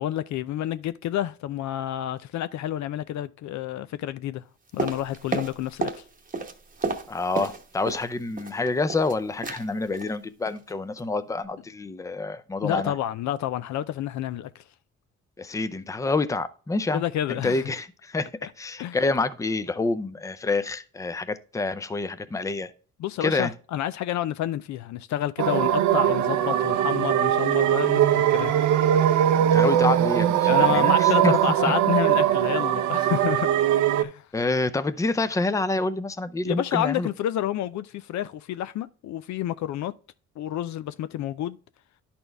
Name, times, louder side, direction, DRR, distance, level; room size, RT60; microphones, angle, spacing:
voice 1, 0.0-4.4 4.7-6.0 12.6-14.6 16.9-17.6 18.4-18.5 18.8-19.0 23.0-28.5 30.4-33.6 34.0-34.3 36.4-39.9 40.4-41.6, left 12 dB, 70° left, 0.5 m, -29 dB
sound 1, 4.8-6.0 6.3-8.1 8.4-9.1 9.4-9.6 9.9-10.1 10.5-10.7 11.0-11.1, right 4 dB, 30° right, 0.9 m, -31 dB
voice 2, 7.1-12.9 15.4-17.0 17.3-18.3 18.6-22.7 23.2-23.5 29.4-31.3 34.3-37.1, left 3 dB, 10° left, 0.5 m, -27 dB
sound 2, 25.4-34.0, right 11 dB, 75° right, 0.6 m, -21 dB
11.0 x 4.3 x 3.3 m
cardioid pair, 90°, 30 cm